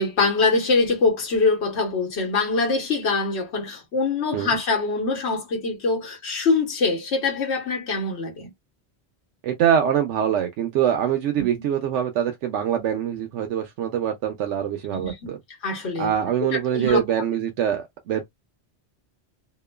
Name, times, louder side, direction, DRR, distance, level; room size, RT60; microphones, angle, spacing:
voice 1, 0.0-8.5 11.4-11.5 14.9-15.1 15.6-16.1 16.5-17.0, left 3 dB, 70° left, 1.3 m, -23 dB
voice 2, 9.4-15.4 16.0-18.2, right 9 dB, 85° right, 0.9 m, -24 dB
2.9 x 2.1 x 2.2 m
omnidirectional pair, 1.2 m